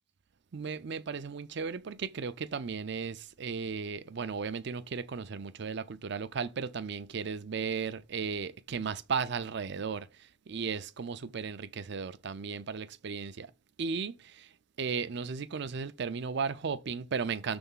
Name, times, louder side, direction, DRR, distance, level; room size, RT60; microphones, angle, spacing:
voice 1, 0.5-13.5 13.8-14.5 14.8-17.6, right 5 dB, 60° right, 0.5 m, -35 dB
6.5 x 3.5 x 5.5 m
head